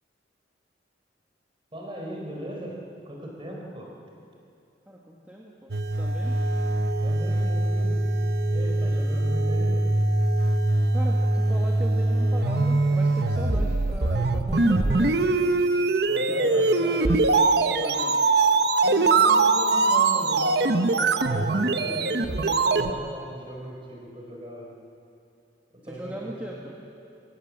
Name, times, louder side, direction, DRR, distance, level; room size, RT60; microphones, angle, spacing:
voice 1, 1.7-3.9 7.0-8.0 8.5-9.9 16.1-17.3 18.8-24.7 25.8-26.3, right 1 dB, 30° right, -1 dB, 4.6 m, -38 dB
voice 2, 4.9-6.4 10.9-15.3 16.3-17.2 17.7-18.2 25.9-26.8, right 1 dB, 10° right, -3 dB, 1.7 m, -38 dB
sound 1, 5.7-22.9, right 3 dB, 60° right, 0.9 m, -22 dB
24.0 x 17.0 x 7.6 m, 2.7 s
head